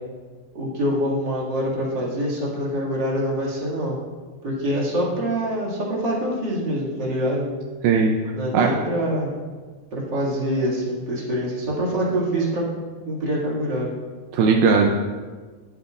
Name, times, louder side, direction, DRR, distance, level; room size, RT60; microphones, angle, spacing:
voice 1, 0.5-4.0 4.4-7.4 8.3-9.3 9.9-12.6 13.1-13.9, equal, 35° right, -6 dB, 1.8 m, -25 dB
voice 2, 14.3-14.9, right 5 dB, 90° right, 2 dB, 2.1 m, -17 dB
20.5 x 8.3 x 2.5 m, 1.4 s
omnidirectional pair, 5.2 m